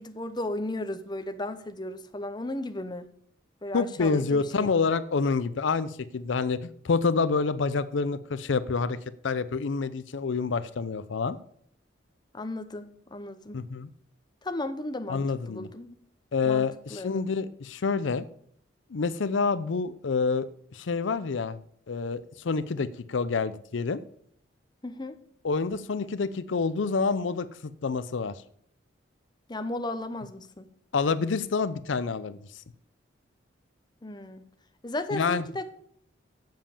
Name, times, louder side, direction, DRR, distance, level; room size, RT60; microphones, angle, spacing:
voice 1, 0.0-3.1 3.6-4.9 12.3-13.6 14.4-15.9 16.4-17.2 24.8-25.2 29.5-30.7 34.0-34.4 34.8-35.7, left 1 dB, 20° left, 9 dB, 0.7 m, -35 dB
voice 2, 3.7-9.0 9.2-11.4 13.5-13.9 15.1-15.7 16.3-18.2 18.9-20.5 20.7-21.6 21.9-24.0 25.4-27.5 27.8-28.4 30.9-32.4 35.1-35.4, left 4 dB, 75° left, 15 dB, 0.5 m, -27 dB
7.5 x 7.4 x 7.0 m, 0.64 s
head